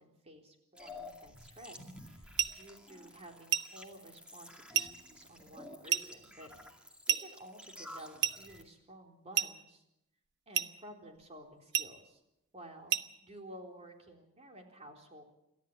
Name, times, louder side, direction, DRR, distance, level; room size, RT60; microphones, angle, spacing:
voice 1, 0.0-6.5 7.1-9.8 10.5-12.2 12.5-15.2, right 1 dB, 30° right, 2 dB, 3.8 m, -53 dB
sound 1, 0.8-8.6, left 1 dB, 5° right, 2.2 m, -51 dB
sound 2, 2.4-2.6 3.5-3.8 4.7-5.0 5.9-6.1 7.1-7.3 8.2-8.5 9.3-9.6 10.5-10.8 11.7-12.0 12.9-13.1, right 9 dB, 55° right, 0.9 m, -31 dB
28.0 x 13.5 x 8.6 m, 0.87 s
head